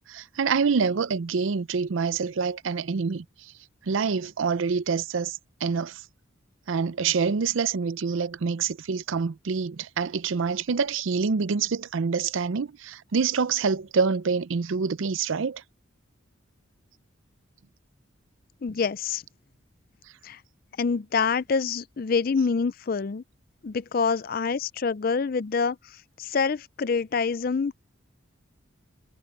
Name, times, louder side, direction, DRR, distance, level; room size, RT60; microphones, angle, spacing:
voice 1, 0.1-3.2 3.9-6.0 6.7-15.6, right 5 dB, 70° right, 0.5 m, -26 dB
voice 2, 18.6-19.2 20.2-20.4 20.8-23.2 23.6-25.8 26.2-27.8, left 5 dB, 45° left, 0.4 m, -26 dB
head